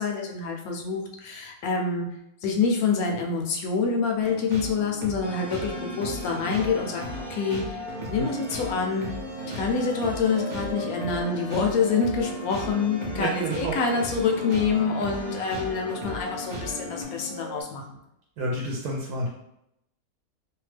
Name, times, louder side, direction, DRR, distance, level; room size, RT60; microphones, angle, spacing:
voice 1, 0.0-2.1 2.4-9.1 9.6-18.0, left 5 dB, 75° left, 1 dB, 1.0 m, -26 dB
sound 1, 4.2-17.0, right 2 dB, 60° right, 0.4 m, -38 dB
sound 2, 5.2-17.6, left 2 dB, 35° right, 1.0 m, -38 dB
voice 2, 13.1-13.7 18.4-19.3, right 1 dB, 75° right, -2 dB, 1.1 m, -29 dB
2.8 x 2.2 x 3.2 m, 0.82 s
omnidirectional pair, 1.6 m